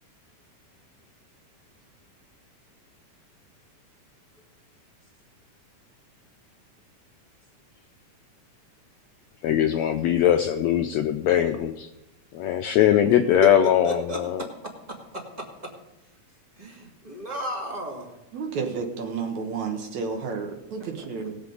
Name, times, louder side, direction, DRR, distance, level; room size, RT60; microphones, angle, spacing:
voice 1, 9.4-11.9 12.4-14.5, left 10 dB, 80° left, 6 dB, 1.6 m, -21 dB
voice 2, 13.4-14.5 15.1-15.7 16.6-18.1 21.0-21.1, equal, 15° right, -1 dB, 1.8 m, -33 dB
voice 3, 18.3-21.4, right 5 dB, 65° right, 3 dB, 2.4 m, -31 dB
20.0 x 7.7 x 3.9 m, 0.97 s
omnidirectional pair, 3.7 m